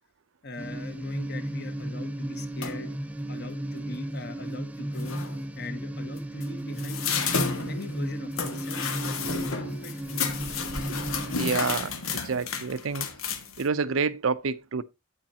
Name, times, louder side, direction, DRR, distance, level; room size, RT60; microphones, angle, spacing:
voice 1, 0.4-2.9 3.3-5.2 5.6-9.9, left 2 dB, 55° left, 1.6 m, -40 dB
sound 1, 0.6-11.5, right 1 dB, 5° right, 0.4 m, -35 dB
sound 2, 2.6-2.9 4.5-4.6 4.9-5.4 6.2-13.6, left 5 dB, 85° left, 1.6 m, -32 dB
voice 2, 11.4-11.9 12.2-13.1 13.6-14.8, right 5 dB, 75° right, 0.6 m, -28 dB
8.8 x 8.6 x 2.8 m
head